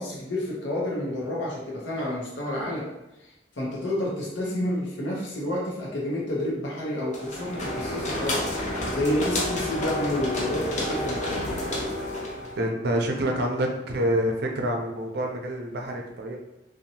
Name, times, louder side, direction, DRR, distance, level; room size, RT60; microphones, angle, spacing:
voice 1, 0.0-2.9 3.2-8.5 8.9-11.2, left 1 dB, 85° left, -4 dB, 0.7 m, -29 dB
sound 1, 7.1-12.6, left 1 dB, 40° left, 0.6 m, -30 dB
voice 2, 12.6-16.4, right 1 dB, 65° right, 2 dB, 0.5 m, -27 dB
2.7 x 2.1 x 2.7 m, 0.96 s
head